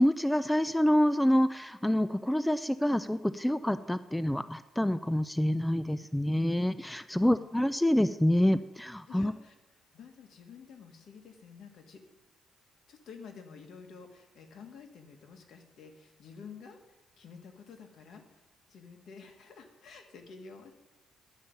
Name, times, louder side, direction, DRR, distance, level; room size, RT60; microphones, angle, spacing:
voice 1, 0.0-9.3, left 1 dB, 5° left, 13 dB, 0.3 m, -27 dB
voice 2, 7.1-7.5 9.1-9.5 9.9-12.0 12.9-20.7, left 5 dB, 65° left, 4 dB, 1.7 m, -50 dB
11.0 x 5.2 x 7.2 m, 1.0 s
cardioid pair, 90°, 0 cm